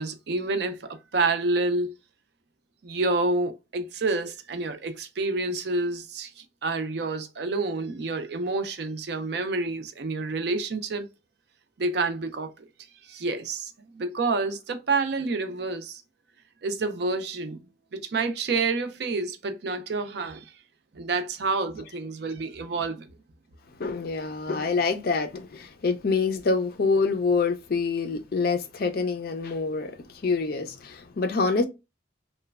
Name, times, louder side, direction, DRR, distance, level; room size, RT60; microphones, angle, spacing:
voice 1, 0.0-1.9 2.8-11.1 11.8-12.7 13.0-16.0 16.6-17.6 17.9-20.5 20.9-23.1, right 3 dB, 60° right, 0.5 m, -28 dB
voice 2, 23.8-31.6, left 4 dB, 50° left, 0.4 m, -26 dB
3.0 x 2.1 x 2.2 m
head